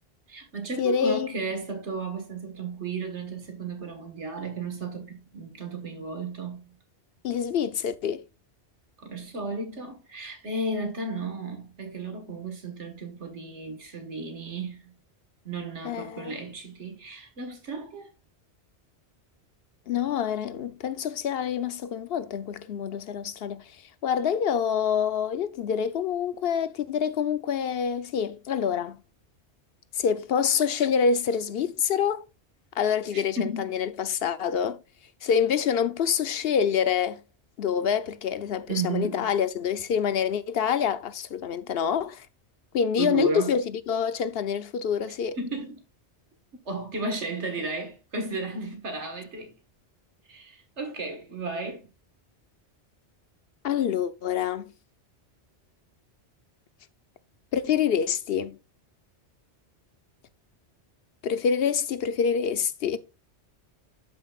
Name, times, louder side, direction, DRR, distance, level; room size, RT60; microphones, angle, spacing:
voice 1, 0.3-6.8 9.0-14.9 15.5-18.1 33.1-33.7 38.7-39.3 43.0-43.5 45.4-45.8 46.7-49.6 50.3-51.9, right 3 dB, 90° right, 1.9 m, -34 dB
voice 2, 0.8-1.3 7.2-8.2 15.8-16.4 19.9-23.7 24.0-29.0 29.9-32.2 32.8-34.8 35.2-37.2 37.6-42.3 42.7-45.4 53.6-54.6 57.5-58.6 61.2-63.0, left 7 dB, 65° left, 0.9 m, -26 dB
12.0 x 5.6 x 2.4 m
omnidirectional pair, 1.1 m